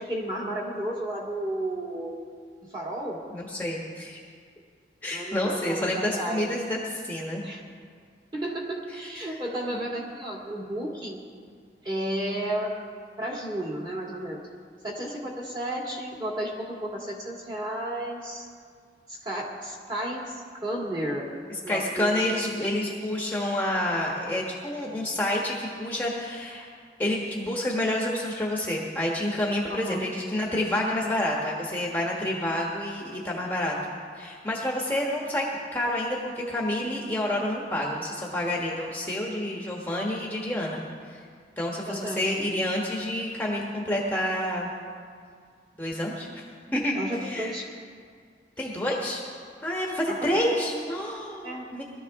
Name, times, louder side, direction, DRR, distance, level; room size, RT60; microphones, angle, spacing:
voice 1, 0.0-2.2 2.6-3.2 5.1-6.5 7.4-7.6 8.3-11.2 11.8-12.7 13.2-14.4 14.8-18.5 19.1-21.3 21.6-22.1 29.7-30.2 41.9-42.3 46.9-47.6 50.1-50.9 51.4-51.7, right 1 dB, 25° right, -3 dB, 2.2 m, -33 dB
voice 2, 3.3-4.2 5.0-6.8 7.0-7.4 21.5-26.7 27.0-35.5 35.7-41.3 41.6-44.7 45.8-46.4 46.7-47.5 48.6-49.2 49.6-51.8, left 1 dB, 10° left, -3 dB, 1.2 m, -29 dB
21.0 x 13.0 x 3.6 m, 2.1 s
head